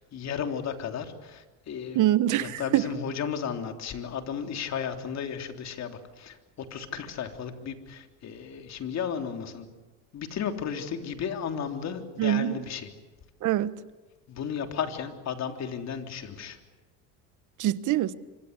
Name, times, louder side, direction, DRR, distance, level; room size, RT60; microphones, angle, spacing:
voice 1, 0.0-2.0 2.3-9.7 10.1-12.9 14.3-16.6, left 7 dB, 45° left, 3.4 m, -34 dB
voice 2, 1.9-2.9 12.2-12.6 13.4-13.7 17.6-18.1, right 13 dB, 50° right, 1.3 m, -24 dB
26.5 x 25.0 x 8.2 m
supercardioid pair, 115°, 38 cm